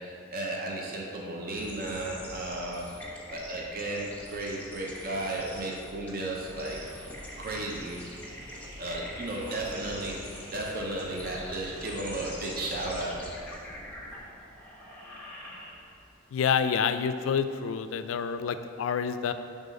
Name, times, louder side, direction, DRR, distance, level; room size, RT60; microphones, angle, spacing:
voice 1, 0.0-2.9 3.3-6.8 7.4-8.0 8.7-13.3, right 2 dB, 45° right, -2 dB, 0.7 m, -34 dB
sound 1, 1.5-16.1, left 1 dB, 10° left, 1.0 m, -44 dB
sound 2, 5.3-14.0, equal, 85° right, 1.0 m, -50 dB
voice 2, 16.3-19.3, left 7 dB, 75° left, 10 dB, 0.3 m, -28 dB
5.4 x 3.6 x 5.3 m, 2.5 s
head